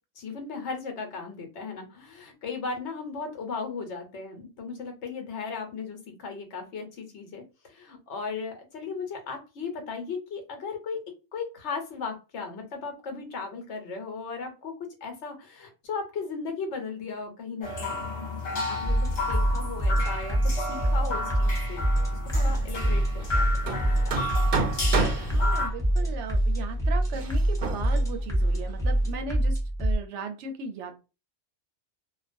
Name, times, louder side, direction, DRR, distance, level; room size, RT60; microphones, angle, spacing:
voice 1, 0.2-11.0 11.3-14.7 15.0-18.0 18.5-21.8 22.3-24.1, left 5 dB, 75° left, 4 dB, 1.1 m, -36 dB
sound 1, 17.6-25.7, left 2 dB, 45° left, 0.7 m, -33 dB
sound 2, 18.8-30.0, right 1 dB, 5° left, 0.5 m, -26 dB
Hammer, 22.3-29.2, right 3 dB, 60° right, 0.7 m, -33 dB
voice 2, 25.2-31.0, right 4 dB, 85° right, 6 dB, 0.9 m, -37 dB
2.4 x 2.2 x 2.5 m, 0.30 s
omnidirectional pair, 1.2 m